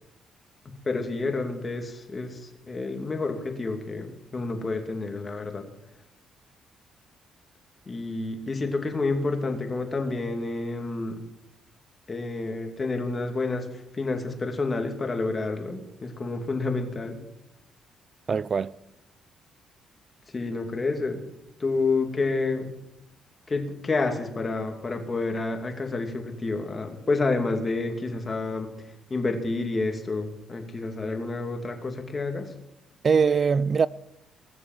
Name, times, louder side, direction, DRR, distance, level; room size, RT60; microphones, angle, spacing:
voice 1, 0.6-5.7 7.9-11.2 12.1-13.7 13.9-17.2 20.3-21.3 21.6-22.8 23.5-28.7 29.1-32.5, left 3 dB, 30° left, 2.5 m, -29 dB
voice 2, 18.3-18.7 33.0-33.9, right 6 dB, 40° right, 0.4 m, -22 dB
19.5 x 6.9 x 7.8 m
cardioid pair, 90°, 0 cm